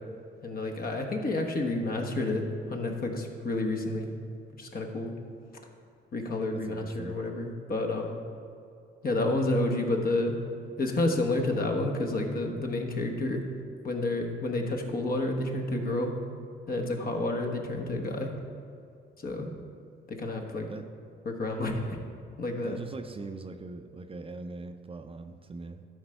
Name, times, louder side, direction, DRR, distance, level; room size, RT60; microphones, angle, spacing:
voice 1, 0.4-4.1 4.6-5.1 6.1-8.2 9.0-10.3 10.8-13.4 13.8-16.1 16.7-18.3 19.2-19.5 20.1-20.7 21.2-22.0 22.4-22.8, left 2 dB, 50° left, 2 dB, 1.3 m, -30 dB
voice 2, 6.5-7.3 20.7-20.9 22.5-25.8, right 3 dB, 30° right, 7 dB, 0.5 m, -41 dB
12.5 x 5.2 x 4.5 m, 2.4 s
cardioid pair, 90°, 20 cm